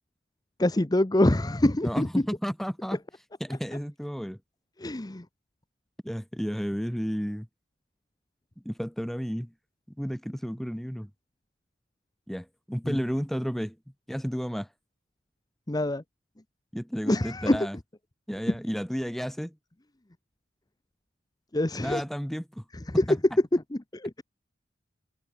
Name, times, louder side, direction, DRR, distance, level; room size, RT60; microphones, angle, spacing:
voice 1, 0.6-2.1 4.8-5.2 12.8-13.0 15.7-16.0 17.1-17.7 21.5-22.0 22.9-23.0 23.5-24.2, left 1 dB, 20° left, 0.8 m, -25 dB
voice 2, 1.8-3.0 3.4-4.4 6.0-7.5 8.6-9.5 10.0-11.1 12.3-13.8 14.1-14.7 16.7-17.8 18.3-19.5 21.8-22.6 23.1-23.2, equal, ahead, 2.4 m, -32 dB
head